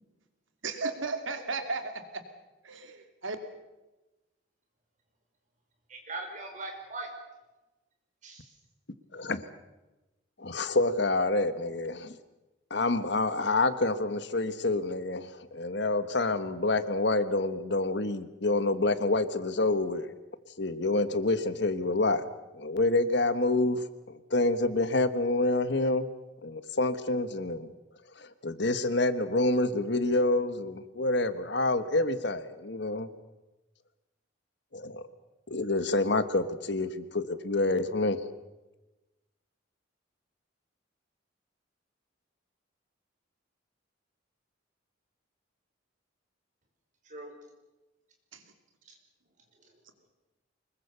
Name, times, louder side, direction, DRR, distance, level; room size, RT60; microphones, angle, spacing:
voice 1, 0.6-2.2 2.6-3.4 48.3-48.4, right 3 dB, 80° right, 7 dB, 2.6 m, -35 dB
voice 2, 5.9-7.1 8.2-8.5 47.0-47.3 48.8-48.9 49.6-49.7, right 2 dB, 40° right, 3 dB, 5.2 m, -40 dB
voice 3, 9.1-9.5 10.4-12.1 12.7-20.1 20.6-22.3 22.5-26.1 26.4-27.7 28.2-33.1 34.7-35.0 35.5-38.2, left 2 dB, 60° left, 12 dB, 1.4 m, -27 dB
25.0 x 22.0 x 6.9 m, 1.1 s
head